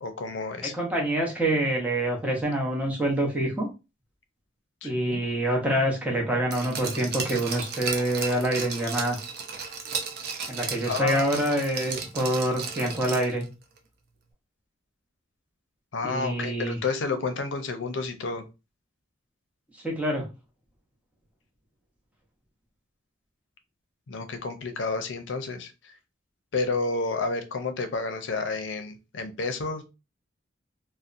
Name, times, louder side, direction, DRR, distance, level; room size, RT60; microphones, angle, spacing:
voice 1, 0.0-0.7 4.8-5.2 10.8-11.4 15.9-18.4 24.1-25.7 26.5-29.8, left 3 dB, 70° left, 7 dB, 0.5 m, -30 dB
voice 2, 0.6-3.7 4.8-9.2 10.5-13.5 16.0-16.8 19.8-20.3, right 1 dB, 10° right, -2 dB, 0.7 m, -26 dB
Glass, 6.5-13.4 13.8-13.9, right 5 dB, 55° right, 0.5 m, -34 dB
2.7 x 2.0 x 2.4 m, 0.27 s
head